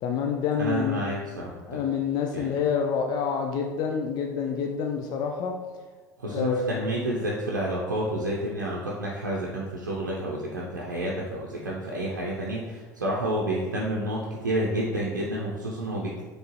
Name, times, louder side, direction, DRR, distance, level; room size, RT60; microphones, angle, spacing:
voice 1, 0.0-1.1 1.7-5.5 6.2-6.8, left 6 dB, 45° left, 2 dB, 0.4 m, -27 dB
voice 2, 0.6-1.8 2.3-2.5 6.2-16.2, right 1 dB, 80° right, -4 dB, 0.5 m, -30 dB
4.3 x 3.2 x 3.1 m, 1.3 s
figure-of-eight pair, 70°, 10 cm